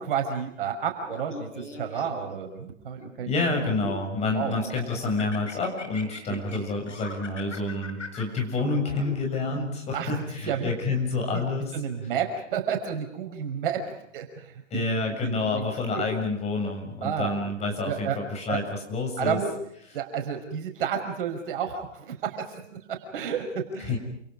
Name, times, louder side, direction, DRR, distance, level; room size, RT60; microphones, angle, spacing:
voice 1, 0.0-3.3 4.3-4.5 6.3-6.6 8.9-9.0 9.9-10.1 10.5-10.9 11.3-11.4 11.7-13.8 14.1-14.8 15.2-16.0 17.0-17.4 17.8-18.2 18.5-18.6 19.2-19.5 19.9-23.9, right 7 dB, 45° right, 4 dB, 5.9 m, -31 dB
Laughter, 1.1-2.4 3.0-4.1 4.5-9.5, left 3 dB, 75° left, 5.7 m, -41 dB
voice 2, 3.3-11.7 14.7-19.4 23.9-24.0, left 3 dB, 15° left, 2 dB, 7.0 m, -28 dB
29.0 x 28.0 x 5.1 m, 0.72 s
figure-of-eight pair, 120°, 37 cm